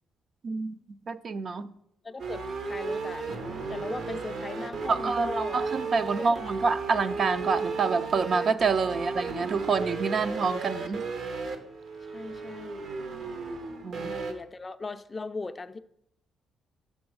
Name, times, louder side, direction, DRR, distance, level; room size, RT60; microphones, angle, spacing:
voice 1, 0.4-0.8 1.1-1.7 4.9-11.0 13.8-14.1, right 4 dB, 50° right, 12 dB, 0.4 m, -27 dB
voice 2, 2.0-3.3 3.7-5.6 6.2-6.6 9.5-9.7 12.1-12.9 13.9-15.8, left 3 dB, 25° left, 12 dB, 0.4 m, -39 dB
sound 1, 2.2-14.3, right 4 dB, 65° right, 0.9 m, -34 dB
6.1 x 5.2 x 4.7 m, 0.76 s
cardioid pair, 90°, 0 cm